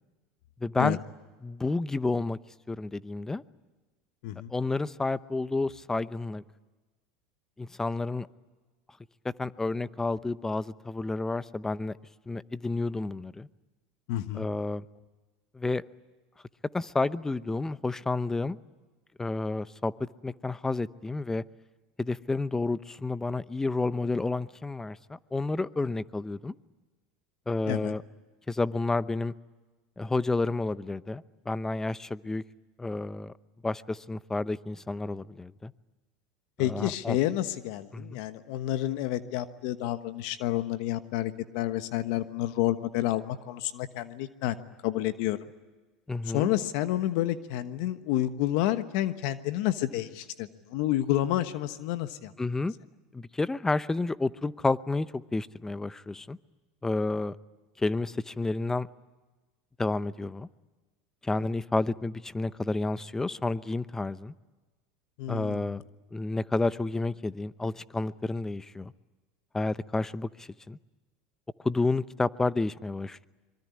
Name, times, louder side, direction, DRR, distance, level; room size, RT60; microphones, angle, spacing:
voice 1, 0.6-1.0 1.4-2.4 2.7-3.4 4.5-6.4 7.6-8.3 9.4-11.9 12.3-13.5 14.3-14.8 15.5-15.8 16.7-18.6 19.2-21.4 22.0-26.5 27.5-28.0 28.5-29.3 30.0-32.4 32.8-33.3 33.6-35.7 36.6-37.2 37.9-38.2 46.1-46.5 52.4-52.7 53.1-56.4 56.8-57.3 57.8-58.9 59.8-60.5 61.2-64.3 65.3-65.8 66.1-68.9 69.5-70.8 71.6-73.3, left 3 dB, 10° left, 16 dB, 0.8 m, -30 dB
voice 2, 4.2-4.5 14.1-14.5 27.7-27.9 36.6-44.5 44.8-45.4 46.3-52.3 61.3-61.5 65.2-65.8, left 14 dB, 70° left, 11 dB, 1.2 m, -29 dB
25.0 x 23.0 x 9.7 m, 1.2 s
supercardioid pair, 100°, 4 cm